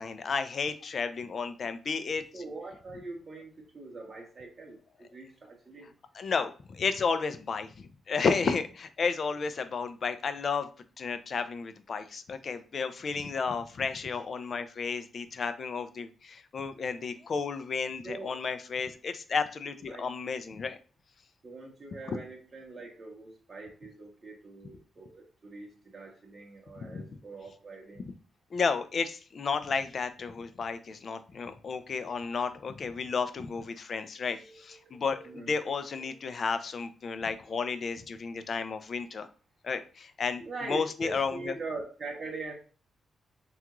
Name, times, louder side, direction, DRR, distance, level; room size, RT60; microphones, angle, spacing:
voice 1, 0.0-2.2 6.1-10.7 11.0-20.8 26.8-27.0 28.5-39.3 39.6-41.5, left 5 dB, 45° left, 10 dB, 0.3 m, -32 dB
voice 2, 2.3-5.9 18.0-18.4 19.8-20.0 21.4-28.1 34.3-36.2 40.4-42.5, right 3 dB, 30° right, -1 dB, 0.7 m, -43 dB
3.5 x 2.3 x 2.9 m, 0.38 s
wide cardioid pair, 145°, 0 cm